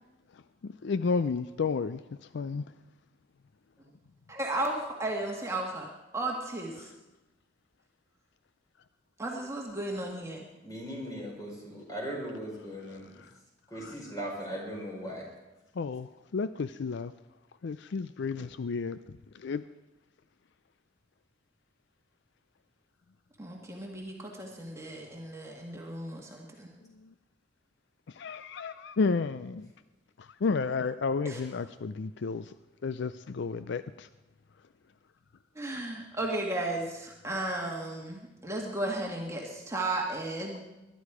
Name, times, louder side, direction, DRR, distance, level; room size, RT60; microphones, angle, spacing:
voice 1, 0.6-2.0 2.3-2.6 13.8-13.9 15.8-16.1 16.3-17.1 17.6-19.0 19.4-19.6 28.2-29.7 30.4-32.5 32.8-34.1, left 4 dB, 65° left, 13 dB, 0.4 m, -31 dB
voice 2, 4.3-6.9 9.2-10.4 23.4-26.7 31.3-31.4 35.6-40.6, right 2 dB, 15° right, -1 dB, 1.8 m, -34 dB
voice 3, 10.6-13.1 13.7-15.2, equal, 20° left, -2 dB, 5.1 m, -38 dB
21.0 x 11.5 x 4.9 m, 1.0 s
head